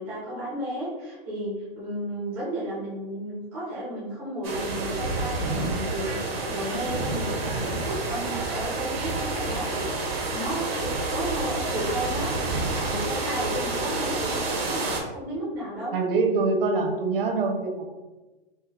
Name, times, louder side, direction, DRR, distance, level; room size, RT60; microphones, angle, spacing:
voice 1, 0.0-15.9, right 1 dB, 5° right, -11 dB, 0.4 m, -33 dB
sound 1, 4.4-15.0, right 2 dB, 85° right, 1.1 m, -29 dB
voice 2, 15.9-17.9, right 3 dB, 65° right, 3 dB, 0.8 m, -24 dB
4.4 x 2.1 x 3.3 m, 1.1 s
hypercardioid pair, 180°, 30 cm